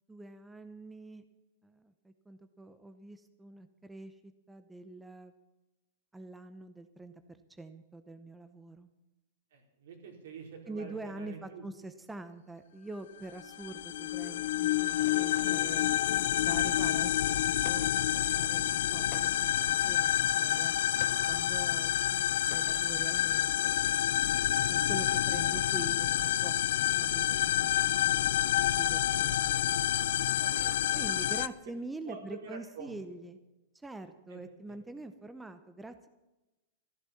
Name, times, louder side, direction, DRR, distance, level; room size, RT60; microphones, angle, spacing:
voice 1, 0.1-1.2 1.6-5.3 6.1-8.9 10.7-15.9 16.4-20.7 21.3-23.7 24.7-29.7 30.9-33.4 33.7-36.1, right 2 dB, 5° right, 9 dB, 0.7 m, -45 dB
voice 2, 9.5-11.6 25.4-25.5 30.4-31.1 32.1-32.9 34.3-34.4 34.7-34.8, right 5 dB, 75° right, 2 dB, 4.4 m, -47 dB
sound 1, 13.4-31.5, left 12 dB, 75° left, 0.5 m, -28 dB
sound 2, 14.2-15.8 17.6-18.1 19.1-19.7 21.0-21.4 22.5-23.0, left 12 dB, 45° left, 1.0 m, -48 dB
14.0 x 12.0 x 7.1 m, 1.0 s
hypercardioid pair, 145°, 0 cm